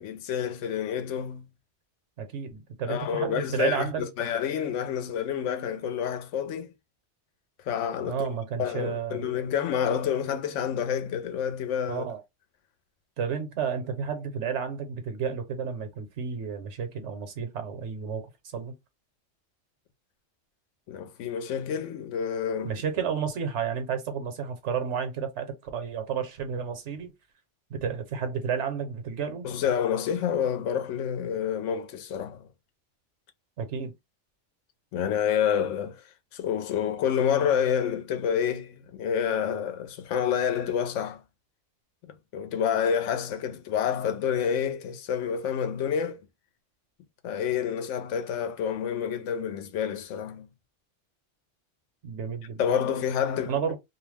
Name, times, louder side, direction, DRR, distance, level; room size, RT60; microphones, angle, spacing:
voice 1, 0.0-1.4 2.9-6.7 7.7-8.3 8.6-12.0 20.9-22.7 29.4-32.5 34.9-36.0 36.3-41.2 42.1-46.2 47.2-50.5 52.6-53.5, left 8 dB, 85° left, 0.9 m, -28 dB
voice 2, 2.2-4.0 8.1-9.3 11.9-12.2 13.2-18.7 22.6-27.1 27.7-29.5 33.6-33.9 52.0-52.6 53.5-53.8, right 7 dB, 75° right, 1.1 m, -31 dB
2.6 x 2.0 x 3.2 m
omnidirectional pair, 1.2 m